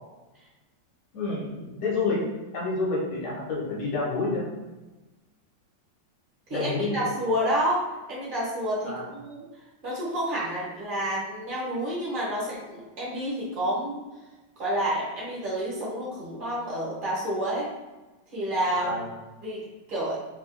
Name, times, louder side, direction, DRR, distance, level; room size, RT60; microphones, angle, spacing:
voice 1, 1.1-2.2 2.5-4.5 6.5-7.1 8.8-9.1 18.7-19.1, left 3 dB, 75° left, -4 dB, 1.5 m, -29 dB
voice 2, 6.5-7.8 8.1-9.4 9.8-14.0 14.6-17.7 18.3-19.1 19.4-20.2, equal, 40° right, -6 dB, 0.8 m, -29 dB
3.2 x 2.3 x 2.4 m, 1.1 s
omnidirectional pair, 1.9 m